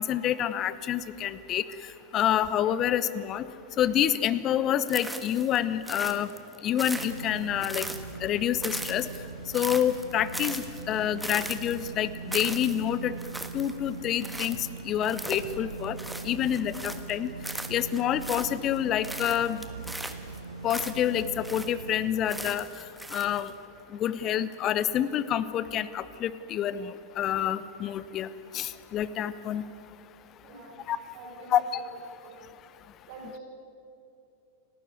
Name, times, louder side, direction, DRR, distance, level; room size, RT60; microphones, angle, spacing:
voice 1, 0.0-1.6 2.1-3.4 3.8-6.3 6.6-7.9 8.2-9.1 9.5-13.1 13.5-14.6 14.8-16.0 16.2-17.3 17.7-19.6 20.6-22.7 23.1-23.5 23.9-28.3 28.5-29.6 30.9-31.0 31.5-31.8, left 10 dB, 30° left, 16 dB, 0.9 m, -27 dB
sound 1, 4.9-5.6 5.9-8.3 8.6-17.1 17.4-18.8 19.0-21.9 22.3-23.5, right 1 dB, 5° right, 1.5 m, -39 dB
sound 2, 6.9-22.4, right 4 dB, 75° right, 1.0 m, -41 dB
voice 2, 30.4-30.8 31.1-31.8 32.2-32.3 33.1-33.4, right 2 dB, 50° right, -2 dB, 5.1 m, -45 dB
30.0 x 12.5 x 9.5 m, 2.8 s
figure-of-eight pair, 90°, 0 cm